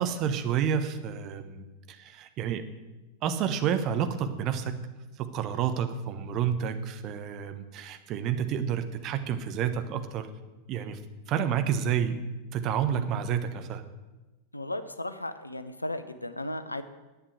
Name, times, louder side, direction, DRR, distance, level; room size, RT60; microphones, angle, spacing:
voice 1, 0.0-2.6 3.2-4.8 5.2-10.3 10.7-11.0 11.3-12.2 12.5-13.8, right 8 dB, 35° right, 8 dB, 1.2 m, -29 dB
voice 2, 14.5-16.8, left 1 dB, 85° left, 11 dB, 0.8 m, -35 dB
11.0 x 8.7 x 8.1 m, 1.1 s
figure-of-eight pair, 90°, 0 cm